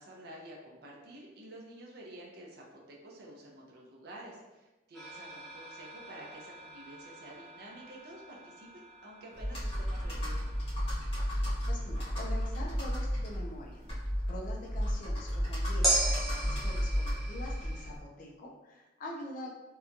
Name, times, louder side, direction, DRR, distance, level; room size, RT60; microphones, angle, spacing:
voice 1, 0.0-10.5, right 1 dB, 55° right, -2 dB, 0.5 m, -50 dB
sound 1, 4.9-14.4 15.8-17.9, right 2 dB, ahead, 0.7 m, -39 dB
Computer keyboard, 9.4-18.0, equal, 30° left, 0.9 m, -33 dB
voice 2, 11.3-13.8 14.2-19.5, left 1 dB, 45° left, -2 dB, 0.4 m, -45 dB
2.8 x 2.2 x 2.5 m, 1.1 s
head